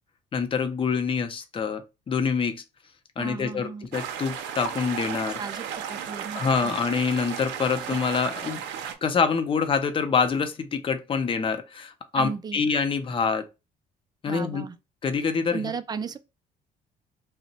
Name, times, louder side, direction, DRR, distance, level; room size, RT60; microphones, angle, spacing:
voice 1, 0.3-2.6 3.2-5.4 6.4-8.6 9.0-13.5 14.2-14.7 15.0-15.7, left 5 dB, 30° left, 0.6 m, -26 dB
voice 2, 3.2-3.9 5.4-6.8 12.1-12.6 14.3-14.7 15.5-16.2, right 6 dB, 25° right, 0.4 m, -35 dB
sound 1, 3.9-8.9, right 8 dB, 90° right, 0.6 m, -34 dB
2.8 x 2.1 x 4.0 m
cardioid pair, 110°, 17 cm